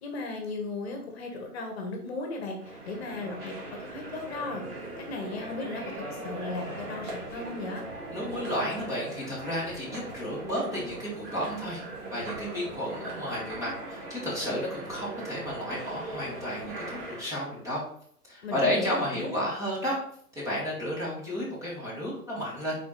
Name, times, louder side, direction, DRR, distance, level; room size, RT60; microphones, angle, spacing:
voice 1, 0.0-4.6 5.1-7.8 18.4-19.4, left 3 dB, 40° left, 3 dB, 1.3 m, -36 dB
sound 1, 2.6-17.2, right 2 dB, 40° right, 2.0 m, -40 dB
voice 2, 8.1-11.8 12.1-17.8 18.3-20.0 20.3-22.8, equal, 5° right, -6 dB, 1.5 m, -32 dB
6.1 x 4.4 x 3.9 m, 0.63 s
figure-of-eight pair, 125°, 47 cm